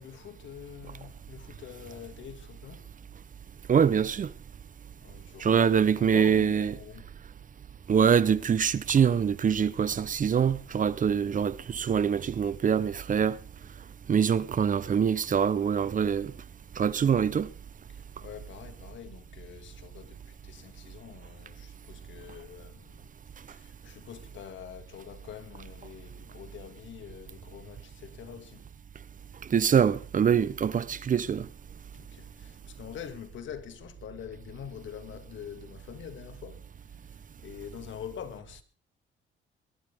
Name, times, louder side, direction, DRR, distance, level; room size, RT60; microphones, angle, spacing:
voice 1, 0.0-2.9 5.0-7.1 16.7-16.8 17.9-28.6 31.9-38.6, left 9 dB, 70° left, 2.2 m, -45 dB
voice 2, 3.7-4.3 5.4-6.7 7.9-13.4 14.1-16.3 16.8-17.5 29.5-31.5, right 7 dB, 40° right, 0.8 m, -24 dB
21.5 x 13.0 x 3.6 m
cardioid pair, 90°, 20 cm